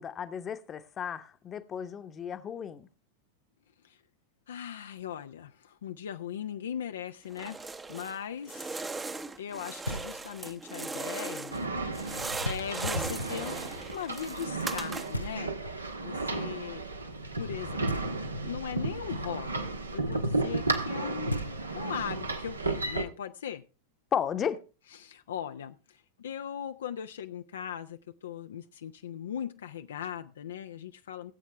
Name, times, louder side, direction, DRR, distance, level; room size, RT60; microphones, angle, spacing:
voice 1, 0.0-2.9 24.1-24.6, left 8 dB, 25° left, 1.0 m, -34 dB
voice 2, 4.5-8.8 9.4-11.5 12.4-16.8 17.3-19.7 19.9-21.5 21.7-23.6 24.9-31.3, left 9 dB, 65° left, 0.5 m, -39 dB
sound 1, 7.3-8.2 8.5-11.6 11.9-15.3, right 3 dB, 15° right, 0.8 m, -38 dB
Knock, 9.9-10.5 12.4-13.1 15.1-15.9 17.9-18.6 20.9-21.0 21.3-22.1, right 1 dB, 85° left, 0.8 m, -38 dB
sound 2, 11.5-23.0, right 2 dB, 80° right, 1.4 m, -33 dB
18.0 x 8.3 x 3.3 m
figure-of-eight pair, 90°, 0 cm